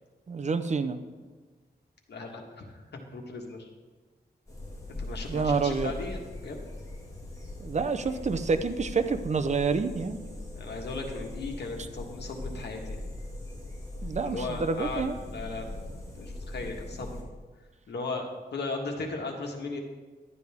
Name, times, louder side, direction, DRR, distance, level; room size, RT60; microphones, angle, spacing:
voice 1, 0.3-1.0 5.3-5.9 7.6-10.2 14.0-15.1, right 4 dB, 45° right, 9 dB, 0.6 m, -28 dB
voice 2, 2.1-3.7 5.0-6.6 10.5-13.1 14.2-15.8 16.1-17.3 17.9-19.8, left 3 dB, 80° left, 2 dB, 1.6 m, -37 dB
sound 1, 4.5-17.2, left 1 dB, 20° left, 2.2 m, -40 dB
12.0 x 9.4 x 3.5 m, 1.4 s
wide cardioid pair, 110°, 17 cm